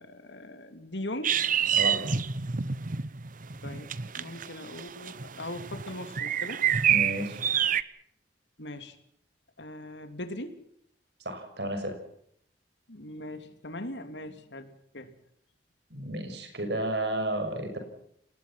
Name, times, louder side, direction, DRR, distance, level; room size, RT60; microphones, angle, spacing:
voice 1, 0.0-1.4 3.6-6.6 8.6-9.0 9.6-10.6 12.9-15.1, left 1 dB, 80° left, 8 dB, 3.3 m, -40 dB
sound 1, 1.2-7.8, right 8 dB, 50° right, 1.0 m, -28 dB
voice 2, 1.7-2.0 2.4-2.5 6.9-7.4 11.2-12.0 15.9-17.8, right 1 dB, 70° right, 6 dB, 6.4 m, -32 dB
30.0 x 20.0 x 6.0 m, 0.69 s
head